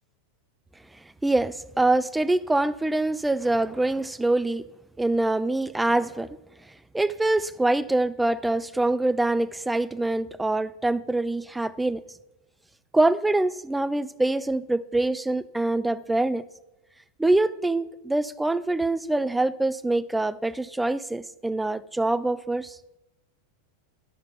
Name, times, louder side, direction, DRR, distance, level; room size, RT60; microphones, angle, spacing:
voice 1, 1.2-4.6 5.0-6.4 6.9-12.0 12.9-16.5 17.2-22.8, right 2 dB, 5° right, 0.3 m, -24 dB
11.5 x 6.9 x 6.8 m
figure-of-eight pair, 90°, 0 cm